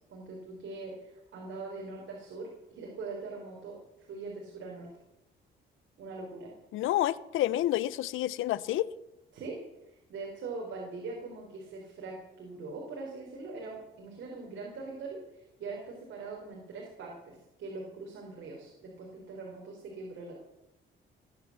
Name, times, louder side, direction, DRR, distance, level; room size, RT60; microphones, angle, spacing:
voice 1, 0.1-3.8 4.1-4.9 6.0-6.5 9.3-9.6 9.9-20.4, right 3 dB, 70° right, -1 dB, 4.2 m, -42 dB
voice 2, 6.7-8.9, left 14 dB, 85° left, 19 dB, 0.7 m, -29 dB
21.0 x 9.2 x 7.3 m, 0.93 s
cardioid pair, 90°, 20 cm